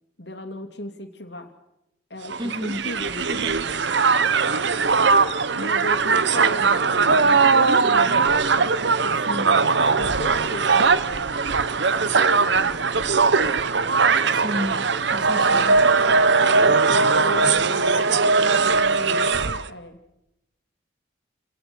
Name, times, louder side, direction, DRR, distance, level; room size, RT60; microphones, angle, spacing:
voice 1, 0.2-1.5 2.1-3.7 5.6-11.3 11.7-13.6 15.9-20.0, left 1 dB, 60° left, 7 dB, 2.8 m, -37 dB
Crowd, 2.3-19.7, right 4 dB, 65° right, 0.9 m, -20 dB
voice 2, 2.4-2.9 9.3-9.5 14.3-15.8, equal, 25° right, 9 dB, 1.5 m, -31 dB
29.0 x 19.0 x 6.2 m, 0.87 s
head